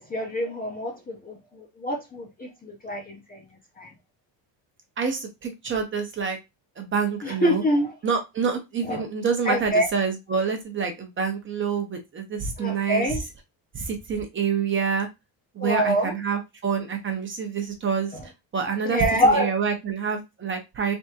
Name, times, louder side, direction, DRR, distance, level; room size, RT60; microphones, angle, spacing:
voice 1, 0.0-3.4 3.8-3.9 7.2-7.9 8.8-9.0 9.4-9.9 12.6-13.2 15.6-16.2 18.8-19.5, equal, 20° left, 0.6 m, -25 dB
voice 2, 5.0-6.4 6.8-7.6 8.0-13.2 13.7-15.1 15.5-21.0, right 6 dB, 25° right, 0.7 m, -27 dB
3.5 x 3.5 x 2.8 m
cardioid pair, 160°, 46 cm